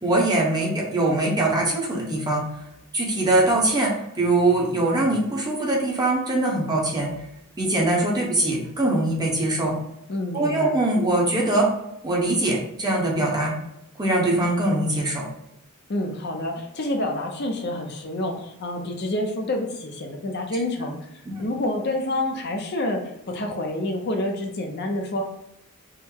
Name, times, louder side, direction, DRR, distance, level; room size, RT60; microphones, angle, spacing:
voice 1, 0.0-2.4 2.9-7.1 7.6-9.8 10.3-11.7 12.0-13.5 14.0-15.2 21.2-21.4, right 2 dB, 20° right, -3 dB, 0.8 m, -22 dB
voice 2, 10.1-10.7 15.9-21.1 21.4-25.2, left 1 dB, 50° left, 3 dB, 0.5 m, -28 dB
3.7 x 2.0 x 4.4 m, 0.82 s
head